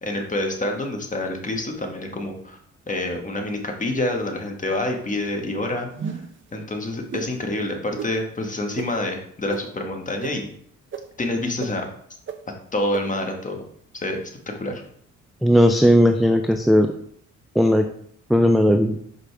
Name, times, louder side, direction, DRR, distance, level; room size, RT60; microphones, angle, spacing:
voice 1, 0.0-2.6 2.9-5.9 6.5-10.5 11.2-11.9 12.7-13.6 13.9-14.3 14.6-14.8, left 1 dB, 25° left, 3 dB, 1.4 m, -27 dB
sound 1, 5.9-6.4 7.1-7.3 8.0-8.1 8.8-8.9 9.5-9.6 10.2-10.3 10.9-11.0 11.6-11.7 12.3-12.4 12.9-13.0, right 6 dB, 40° right, 0.7 m, -32 dB
voice 2, 15.4-16.9 17.6-17.9 18.3-19.0, equal, ahead, 5 dB, 0.4 m, -16 dB
6.2 x 5.2 x 3.4 m, 0.64 s
cardioid pair, 90°, 30 cm